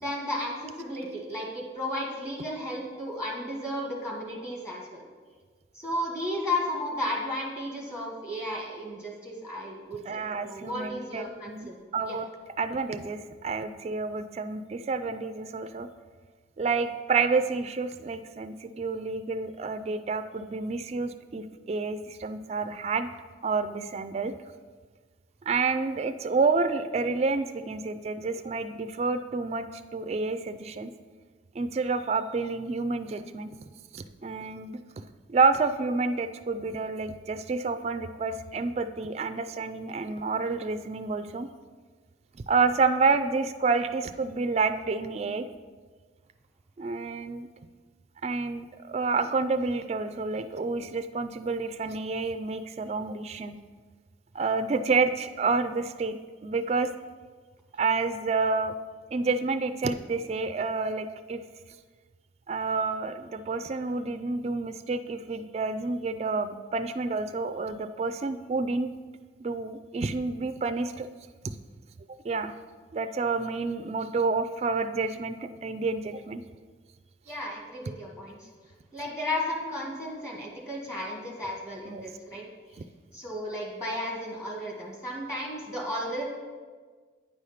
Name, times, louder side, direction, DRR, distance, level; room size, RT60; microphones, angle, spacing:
voice 1, 0.0-5.0 5.7-11.8 12.0-12.2 77.3-78.5 78.9-82.4 83.1-86.3, left 1 dB, 15° left, -1 dB, 1.4 m, -34 dB
voice 2, 10.1-12.3 12.6-15.9 16.6-23.1 23.4-24.3 25.5-29.7 29.9-30.9 31.5-33.5 33.9-41.5 42.5-45.5 46.8-47.5 48.2-53.5 54.3-56.2 56.4-56.9 57.8-58.7 59.1-61.4 62.5-68.9 69.4-71.1 71.4-71.6 72.2-72.5 72.9-76.4 81.9-82.0, right 4 dB, 35° right, 9 dB, 0.3 m, -29 dB
9.2 x 4.9 x 5.7 m, 1.5 s
head